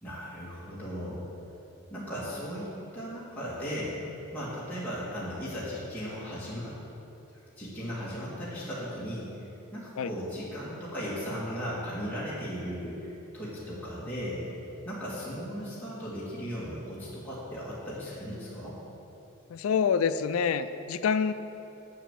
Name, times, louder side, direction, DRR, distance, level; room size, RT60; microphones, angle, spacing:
voice 1, 0.0-1.2 1.9-2.7 2.9-4.0 4.3-6.7 7.6-9.2 9.7-14.4 14.8-18.8, equal, 10° left, -10 dB, 1.8 m, -36 dB
voice 2, 19.5-21.3, left 6 dB, 85° left, 11 dB, 0.4 m, -26 dB
7.2 x 6.0 x 7.4 m, 3.0 s
head